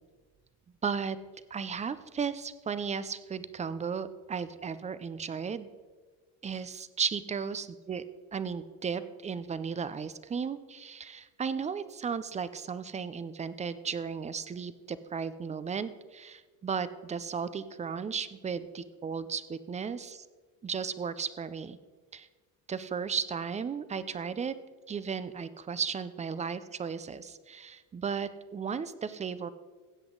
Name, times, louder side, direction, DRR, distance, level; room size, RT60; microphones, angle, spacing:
voice 1, 0.8-1.2 1.5-5.7 6.4-8.0 8.3-20.2 20.6-21.8 22.1-22.3 22.7-24.5 24.9-29.5, right 6 dB, 20° right, 14 dB, 0.4 m, -35 dB
16.0 x 7.9 x 3.8 m, 1.4 s
cardioid pair, 110°, 42 cm